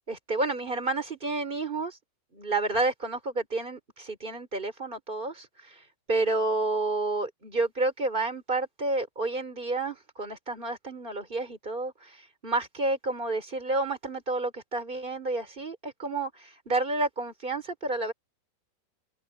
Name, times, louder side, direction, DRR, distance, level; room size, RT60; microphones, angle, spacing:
voice 1, 0.1-2.0 2.3-5.8 6.1-12.2 12.4-18.1, right 2 dB, 10° right, 2.8 m, -30 dB
omnidirectional pair, 5.8 m